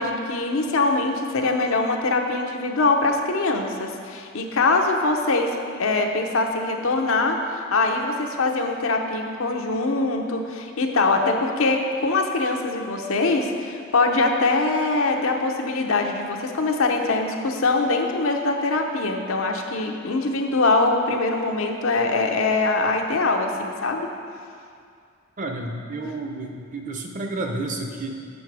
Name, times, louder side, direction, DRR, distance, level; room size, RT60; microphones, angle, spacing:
voice 1, 0.0-24.1, left 3 dB, 85° left, 3 dB, 0.7 m, -23 dB
voice 2, 25.4-28.1, right 2 dB, 40° right, 3 dB, 0.6 m, -30 dB
7.4 x 5.8 x 4.7 m, 2.3 s
head